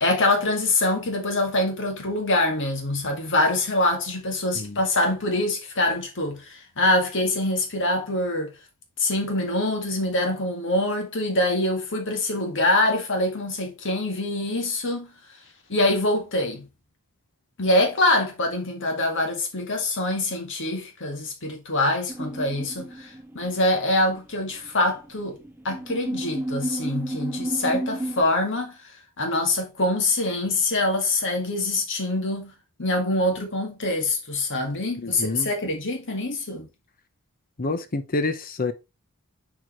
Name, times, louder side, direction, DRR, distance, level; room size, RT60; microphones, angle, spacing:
voice 1, 0.0-8.5 9.0-15.1 15.7-16.6 17.6-25.4 25.6-32.5 32.8-36.7, left 2 dB, 60° left, 1.9 m, -24 dB
sound 1, 22.1-23.8 24.1-28.2, right 1 dB, 10° right, 1.0 m, -32 dB
voice 2, 35.0-35.5 37.6-38.7, left 3 dB, 40° left, 0.8 m, -28 dB
8.1 x 4.8 x 3.1 m
head